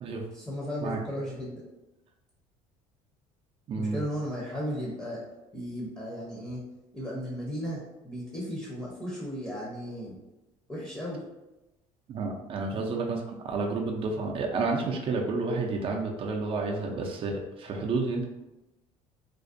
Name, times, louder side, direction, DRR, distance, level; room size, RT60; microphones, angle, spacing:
voice 1, 0.3-1.6 3.8-5.2 5.5-6.6 6.9-10.2 10.7-11.2 12.7-12.9, equal, 10° left, -6 dB, 0.6 m, -35 dB
voice 2, 3.7-4.0 12.1-18.2, right 3 dB, 40° right, 1 dB, 0.4 m, -30 dB
2.4 x 2.1 x 2.5 m, 1.0 s
cardioid pair, 105°, 14 cm